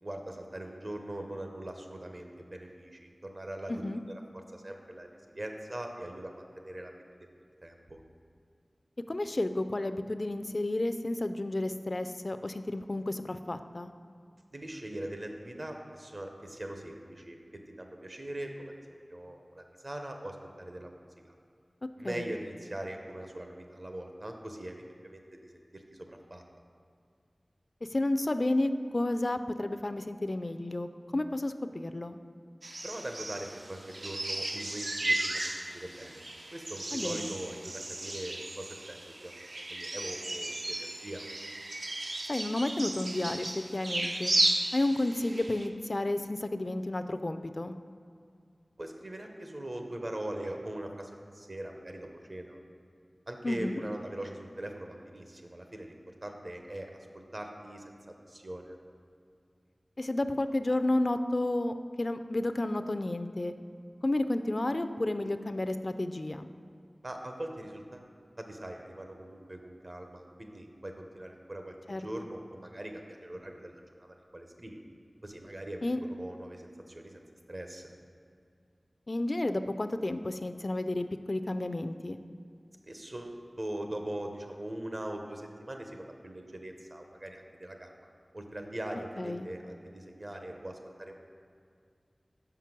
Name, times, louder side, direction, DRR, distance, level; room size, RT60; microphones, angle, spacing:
voice 1, 0.0-4.2 4.5-6.9 7.6-8.0 14.5-17.4 17.8-21.1 22.0-26.4 32.8-36.2 36.5-39.3 39.7-41.2 48.8-52.6 53.3-58.8 67.0-68.0 68.4-71.7 72.0-74.8 75.2-77.2 77.5-77.9 82.8-91.2, right 1 dB, 50° right, 4 dB, 0.9 m, -41 dB
voice 2, 3.7-4.0 9.1-13.9 22.0-22.3 27.9-30.9 31.1-32.2 36.9-37.4 42.3-44.3 44.7-47.7 53.4-53.8 60.0-63.5 64.0-66.5 71.9-72.3 75.8-76.0 79.1-82.2 89.2-89.5, left 1 dB, 50° left, 9 dB, 0.3 m, -31 dB
sound 1, 32.6-45.7, right 2 dB, 70° right, 0.5 m, -34 dB
5.9 x 5.1 x 6.0 m, 2.3 s
wide cardioid pair, 45°, 0 cm